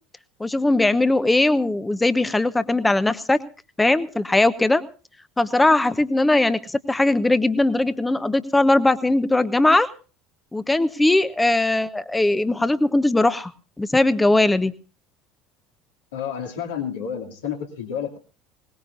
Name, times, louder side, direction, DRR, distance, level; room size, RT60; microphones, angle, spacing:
voice 1, 0.4-3.4 3.8-4.8 5.4-9.9 10.5-13.5 13.8-14.7, left 2 dB, 10° left, 14 dB, 1.0 m, -19 dB
voice 2, 16.1-18.2, left 8 dB, 75° left, 1 dB, 2.7 m, -30 dB
21.5 x 19.5 x 2.6 m, 0.35 s
figure-of-eight pair, 65°, 0 cm